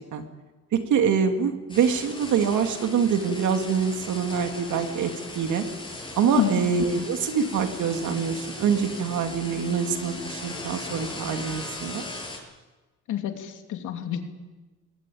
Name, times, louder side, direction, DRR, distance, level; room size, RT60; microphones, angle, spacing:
voice 1, 0.7-5.6 6.2-12.0, right 6 dB, 75° right, 6 dB, 2.7 m, -25 dB
sound 1, 1.7-12.4, left 2 dB, 15° left, 7.4 m, -38 dB
voice 2, 6.4-6.7 13.1-14.3, left 10 dB, 80° left, 5 dB, 2.9 m, -28 dB
21.0 x 19.5 x 8.7 m, 1.2 s
cardioid pair, 90°, 30 cm